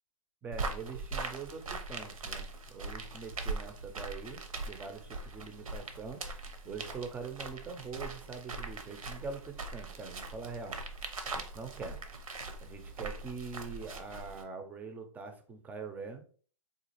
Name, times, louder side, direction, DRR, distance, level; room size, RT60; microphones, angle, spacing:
voice 1, 0.4-12.0 12.6-16.2, right 5 dB, 10° right, 0.4 m, -44 dB
sound 1, 0.5-14.4, right 3 dB, 85° right, 0.7 m, -41 dB
3.8 x 2.4 x 2.9 m
hypercardioid pair, 125°, 17 cm